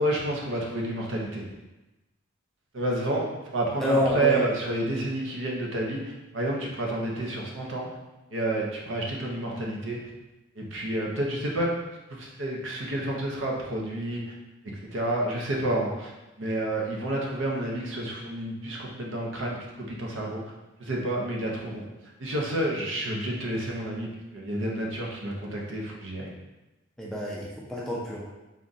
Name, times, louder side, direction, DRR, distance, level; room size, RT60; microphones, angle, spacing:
voice 1, 0.0-1.4 2.7-7.9 8.3-10.0 10.6-11.7 12.2-14.3 14.9-16.1 16.4-20.4 20.8-21.8 22.2-24.1 24.3-26.3, right 1 dB, 60° right, -2 dB, 0.7 m, -29 dB
voice 2, 3.8-4.4 27.0-28.2, equal, ahead, -5 dB, 0.4 m, -27 dB
3.6 x 2.4 x 4.0 m, 1.0 s
head